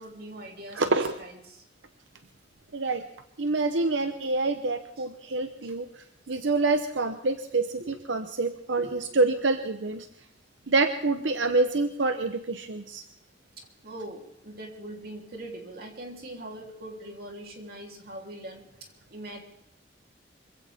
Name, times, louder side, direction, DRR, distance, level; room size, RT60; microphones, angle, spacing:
voice 1, 0.0-1.6 5.0-5.1 5.6-5.7 7.8-8.0 8.8-9.1 13.6-19.4, right 1 dB, 55° right, 1 dB, 3.5 m, -42 dB
voice 2, 0.8-1.1 2.7-3.0 3.4-5.9 6.3-10.1 10.7-13.0, right 3 dB, 85° right, 8 dB, 0.9 m, -26 dB
25.0 x 16.0 x 3.6 m, 0.77 s
head